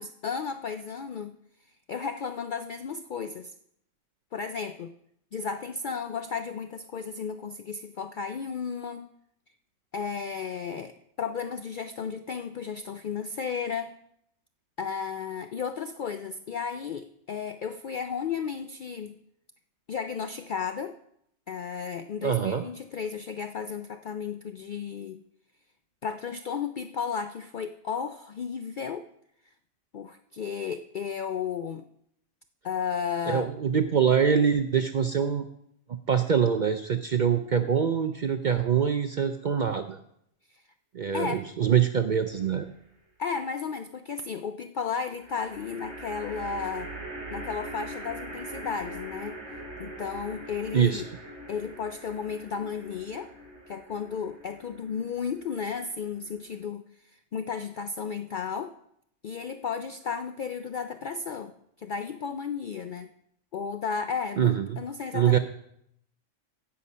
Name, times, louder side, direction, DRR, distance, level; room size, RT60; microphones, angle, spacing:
voice 1, 0.0-1.3 1.9-3.5 4.3-4.9 5.3-9.0 9.9-13.9 14.8-19.2 19.9-20.9 21.5-25.2 26.0-29.1 29.9-31.8 32.6-33.5 40.5-40.6 41.1-41.4 43.2-46.9 47.3-49.4 49.8-51.1 51.5-53.3 53.7-58.7 59.2-61.5 61.8-63.1 63.5-65.4, left 6 dB, 65° left, 9 dB, 0.4 m, -34 dB
voice 2, 22.2-22.6 33.3-35.4 36.1-40.0 40.9-42.7 50.7-51.0 64.4-64.8 65.1-65.4, right 7 dB, 60° right, 8 dB, 0.5 m, -24 dB
sound 1, 42.1-42.7 45.2-56.6, right 1 dB, 20° right, 5.5 m, -42 dB
15.5 x 5.6 x 5.5 m, 0.73 s
omnidirectional pair, 1.3 m